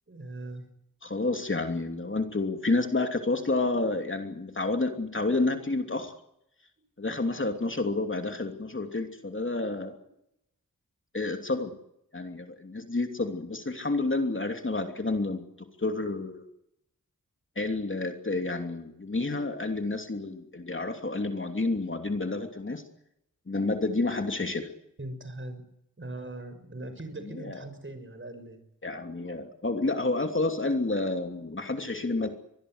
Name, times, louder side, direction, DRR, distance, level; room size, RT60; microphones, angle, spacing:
voice 1, 0.1-0.7 25.0-25.6 26.0-28.6, right 2 dB, 35° right, 9 dB, 6.6 m, -40 dB
voice 2, 1.0-6.1 7.0-10.0 11.1-11.7 12.1-16.4 17.6-22.8 23.5-24.7 27.2-27.6 28.8-32.3, left 2 dB, 35° left, 5 dB, 2.9 m, -29 dB
24.0 x 20.0 x 8.1 m, 0.79 s
wide cardioid pair, 70°, 33 cm